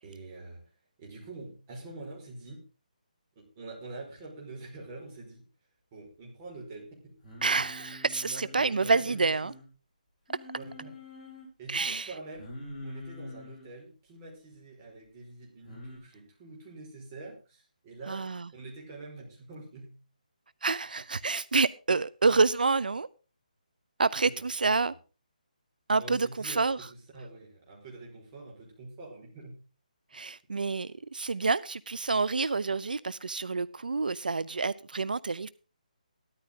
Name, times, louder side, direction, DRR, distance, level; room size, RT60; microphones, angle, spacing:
voice 1, 0.0-0.6 1.0-2.6 3.3-5.4 5.9-7.1 8.3-9.3 10.5-10.9 11.6-12.5 12.8-20.1 24.2-24.4 24.7-24.9 26.0-29.6, right 2 dB, 20° right, 5.2 m, -45 dB
Singing, 7.2-9.7 10.3-11.5 12.4-13.7 15.6-16.0, left 2 dB, 10° left, 6.1 m, -45 dB
voice 2, 7.4-9.5 11.7-12.1 18.1-18.5 20.6-23.1 24.0-24.9 25.9-26.8 30.1-35.5, right 4 dB, 90° right, 0.7 m, -28 dB
14.5 x 13.0 x 3.8 m
hypercardioid pair, 170°, 5 cm